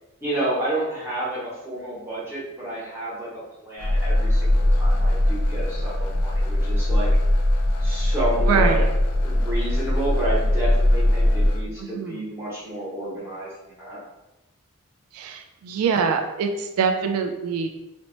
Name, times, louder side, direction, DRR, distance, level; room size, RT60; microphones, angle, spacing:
voice 1, 0.2-7.1 7.8-8.8 9.2-14.0, right 1 dB, 10° right, -7 dB, 0.8 m, -30 dB
sound 1, 3.8-11.6, left 1 dB, 90° left, 0.4 m, -21 dB
voice 2, 8.5-8.9 11.8-12.3 15.1-17.7, right 6 dB, 90° right, 9 dB, 0.3 m, -24 dB
2.8 x 2.1 x 2.9 m, 0.99 s
head